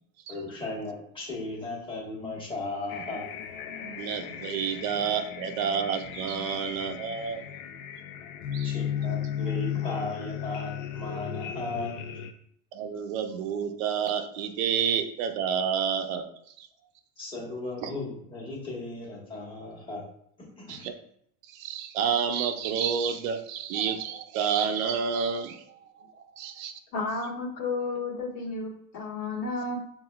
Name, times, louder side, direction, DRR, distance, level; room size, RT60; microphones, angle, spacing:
voice 1, 0.3-3.3 8.6-12.0 17.2-20.0 20.4-20.9, left 2 dB, 15° left, -5 dB, 1.2 m, -36 dB
sound 1, 2.9-12.3, left 9 dB, 85° left, 0.5 m, -35 dB
voice 2, 3.8-7.4 8.5-8.7 9.0-9.1 12.7-16.3 16.6-16.7 17.8-17.9 20.7-20.9 21.5-25.8 26.4-26.8, right 7 dB, 85° right, 7 dB, 0.6 m, -29 dB
voice 3, 26.9-29.8, left 3 dB, 55° left, -3 dB, 1.4 m, -32 dB
5.8 x 2.4 x 2.2 m, 0.69 s
supercardioid pair, 135°, 39 cm